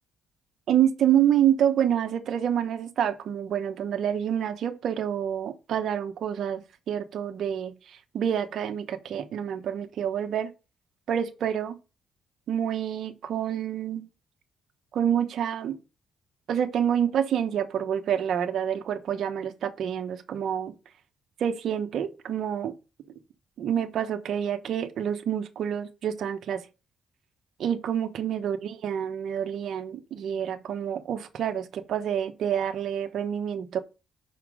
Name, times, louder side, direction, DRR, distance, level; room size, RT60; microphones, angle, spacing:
voice 1, 0.7-7.7 8.1-10.5 11.1-11.8 12.5-14.1 14.9-15.8 16.5-20.7 21.4-22.7 23.6-26.6 27.6-33.8, right 9 dB, 70° right, 1.0 m, -27 dB
5.8 x 5.2 x 4.9 m
cardioid pair, 90°, 0 cm